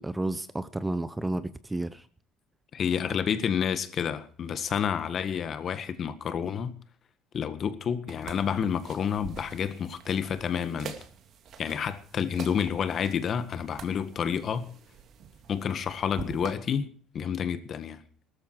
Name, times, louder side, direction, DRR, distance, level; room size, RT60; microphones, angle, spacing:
voice 1, 0.0-2.1, right 2 dB, 10° right, 0.7 m, -31 dB
voice 2, 2.7-6.8 7.3-10.9 11.6-14.7 15.5-16.9 17.1-18.0, left 7 dB, 40° left, 1.7 m, -29 dB
sound 1, 8.1-16.5, right 7 dB, 45° right, 2.5 m, -46 dB
18.5 x 13.5 x 4.8 m
cardioid pair, 145°, 0 cm